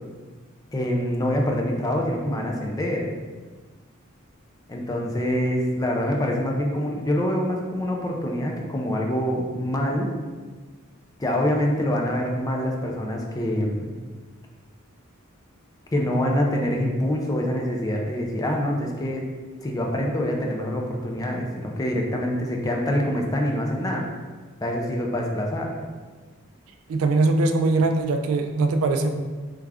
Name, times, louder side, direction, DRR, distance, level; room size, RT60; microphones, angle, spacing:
voice 1, 0.7-3.1 4.7-10.1 11.2-14.0 15.9-19.2 19.6-24.0 24.6-25.7, equal, 15° left, 0 dB, 0.4 m, -25 dB
voice 2, 26.9-29.2, right 3 dB, 75° right, 7 dB, 0.3 m, -21 dB
3.3 x 2.4 x 3.4 m, 1.4 s
head